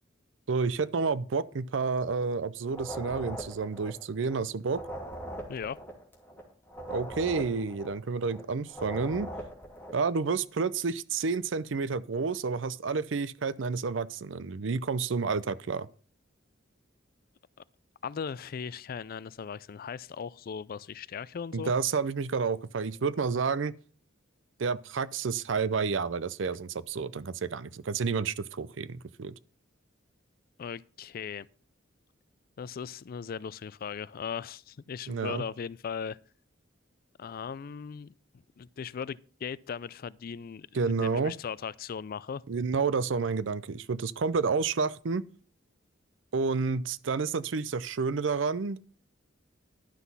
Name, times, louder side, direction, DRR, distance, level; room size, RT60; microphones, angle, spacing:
voice 1, 0.5-4.8 6.9-9.3 9.9-15.9 21.5-23.7 24.6-29.3 35.1-35.4 40.7-41.3 42.5-45.2 46.3-48.8, right 5 dB, 70° right, 0.5 m, -30 dB
sound 1, 2.7-4.4 4.7-8.4 8.7-10.0, right 1 dB, 10° left, 2.5 m, -41 dB
voice 2, 18.0-21.7 30.6-31.5 32.6-36.2 37.2-38.1 38.6-42.4, left 6 dB, 50° left, 0.4 m, -38 dB
11.5 x 6.1 x 5.4 m
head